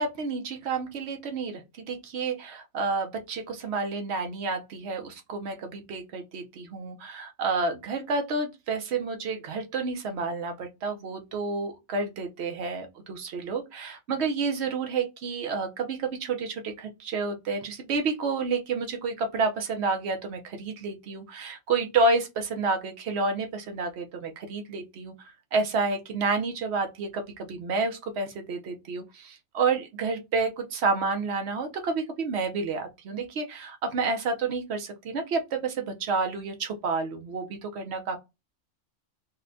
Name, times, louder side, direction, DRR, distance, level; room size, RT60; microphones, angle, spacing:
voice 1, 0.0-38.2, right 4 dB, 60° right, 0.9 m, -30 dB
4.1 x 2.1 x 2.6 m
omnidirectional pair, 1.4 m